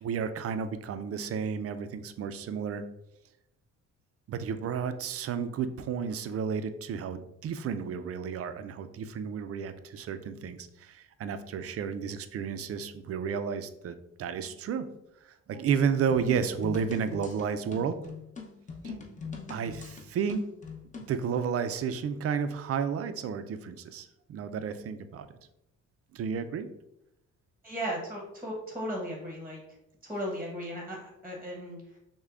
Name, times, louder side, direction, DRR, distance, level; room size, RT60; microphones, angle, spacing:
voice 1, 0.0-2.8 4.3-14.9 15.2-18.0 18.8-18.9 19.5-20.4 21.1-25.3 26.1-26.7, right 6 dB, 50° right, 10 dB, 0.4 m, -32 dB
sound 1, 16.1-21.2, left 5 dB, 25° left, 0.7 m, -42 dB
voice 2, 27.6-29.6 30.0-32.0, equal, 5° right, -1 dB, 1.0 m, -36 dB
6.4 x 2.2 x 2.4 m, 0.83 s
cardioid pair, 90°, 30 cm